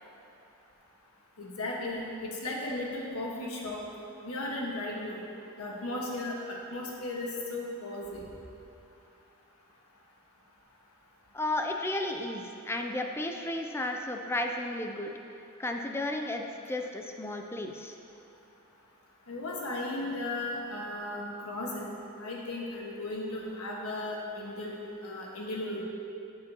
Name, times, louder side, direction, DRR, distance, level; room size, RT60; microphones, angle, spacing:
voice 1, 1.4-3.8 4.2-5.2 5.6-8.3 19.3-24.8 25.0-25.8, left 2 dB, 85° left, -2 dB, 1.5 m, -36 dB
voice 2, 11.3-15.1 15.6-18.0, left 1 dB, 10° left, 3 dB, 0.4 m, -33 dB
11.5 x 7.5 x 2.9 m, 2.7 s
head